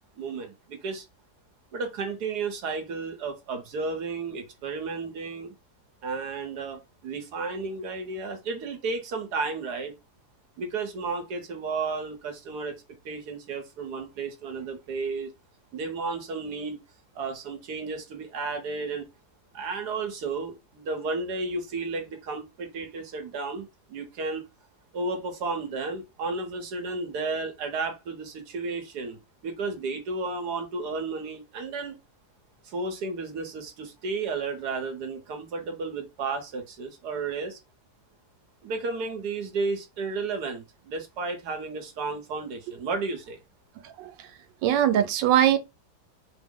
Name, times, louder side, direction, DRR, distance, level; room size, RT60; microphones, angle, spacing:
voice 1, 0.2-1.0 1.7-5.5 6.0-9.9 10.6-12.7 13.0-15.3 15.7-16.8 17.1-19.0 19.5-24.4 24.9-31.9 32.7-37.6 38.6-43.4, right 4 dB, 65° right, 1.3 m, -33 dB
voice 2, 44.6-45.6, right 11 dB, 90° right, 1.3 m, -21 dB
3.4 x 2.0 x 3.6 m
omnidirectional pair, 1.9 m